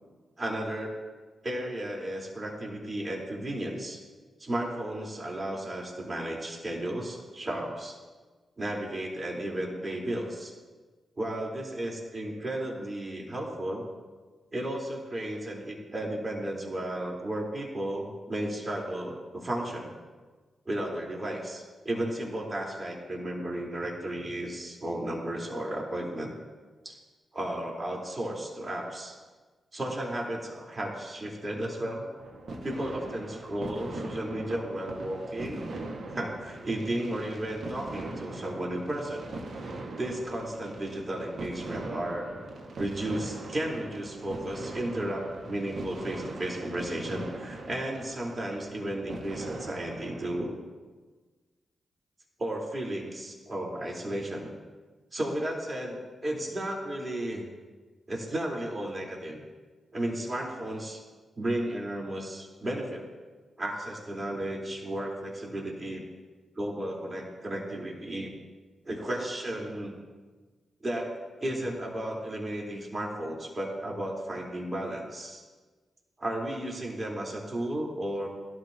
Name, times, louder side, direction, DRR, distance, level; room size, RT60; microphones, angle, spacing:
voice 1, 0.4-1.0 1.4-4.0 4.4-8.0 8.6-10.5 11.2-13.8 14.5-20.0 20.7-26.3 26.8-27.0 27.3-29.2 29.7-32.1 32.6-35.6 36.1-39.2 40.0-42.3 42.8-50.6 52.4-54.5 55.1-57.4 58.1-59.4 59.9-61.0 61.4-63.0 63.6-66.0 66.6-68.3 68.8-70.0 70.8-71.1 71.4-75.4 76.2-78.3, right 1 dB, 35° right, -1 dB, 4.4 m, -34 dB
sound 1, 32.2-50.4, right 2 dB, 65° right, 1.9 m, -41 dB
21.5 x 13.0 x 3.0 m, 1.3 s
supercardioid pair, 40°, 0 cm